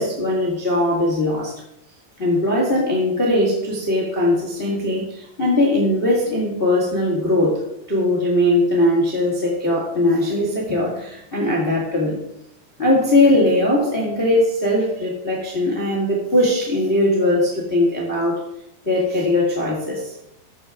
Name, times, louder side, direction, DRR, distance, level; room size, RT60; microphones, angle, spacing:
voice 1, 0.0-1.5 2.2-12.2 12.8-18.4 18.8-20.1, left 1 dB, 70° left, -3 dB, 0.5 m, -20 dB
14.0 x 6.9 x 3.7 m, 0.80 s
omnidirectional pair, 5.3 m